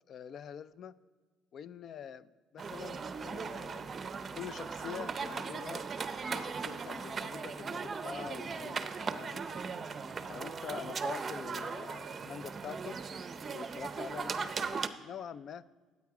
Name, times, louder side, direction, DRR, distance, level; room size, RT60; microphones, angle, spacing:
voice 1, 0.1-0.9 1.5-4.0 4.3-5.9 6.3-9.7 10.3-13.0 13.5-15.6, left 8 dB, 50° left, 17 dB, 0.4 m, -45 dB
sound 1, 2.6-14.9, right 5 dB, 30° right, 0.6 m, -38 dB
13.0 x 8.5 x 4.8 m, 1.4 s
cardioid pair, 125°, 0 cm